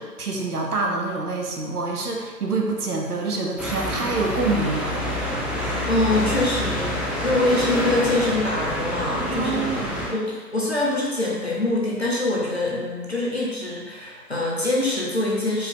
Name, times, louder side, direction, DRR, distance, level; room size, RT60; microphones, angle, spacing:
voice 1, 0.0-5.0 9.3-10.1, right 3 dB, 65° right, 0 dB, 0.8 m, -26 dB
sound 1, 3.6-10.1, left 1 dB, ahead, 0.3 m, -27 dB
voice 2, 5.9-9.9 10.1-15.7, left 2 dB, 40° left, -4 dB, 0.6 m, -24 dB
4.5 x 2.2 x 3.5 m, 1.3 s
figure-of-eight pair, 165°, 49 cm